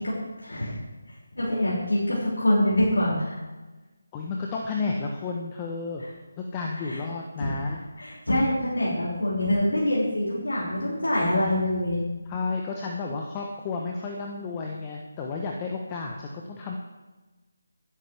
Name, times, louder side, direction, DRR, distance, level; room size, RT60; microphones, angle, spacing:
voice 1, 0.4-0.7 1.3-3.4 6.8-7.0 8.0-12.0, left 1 dB, 85° left, -7 dB, 6.0 m, -25 dB
voice 2, 4.1-6.0 6.4-7.8 11.2-11.6 12.3-16.8, left 4 dB, 20° left, 0 dB, 1.1 m, -32 dB
19.5 x 12.0 x 3.5 m, 1.2 s
figure-of-eight pair, 160°, 0 cm